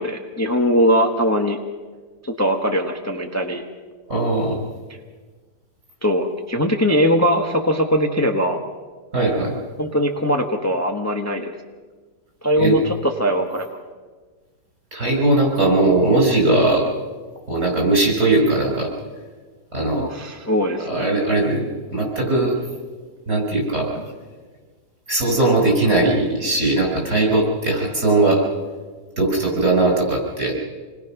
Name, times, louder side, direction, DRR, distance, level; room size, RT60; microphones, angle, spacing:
voice 1, 0.0-1.6 2.2-3.6 6.0-8.6 9.8-11.5 12.4-13.7 19.9-21.1, equal, 10° left, 2 dB, 1.2 m, -20 dB
voice 2, 4.1-4.6 9.1-9.5 12.6-12.8 14.9-16.8 17.5-18.9 19.7-20.0 20.8-21.6 21.9-22.5 23.3-23.9 25.1-28.4 29.2-30.5, right 2 dB, 50° right, -1 dB, 6.1 m, -19 dB
27.5 x 21.0 x 6.0 m, 1.4 s
omnidirectional pair, 1.7 m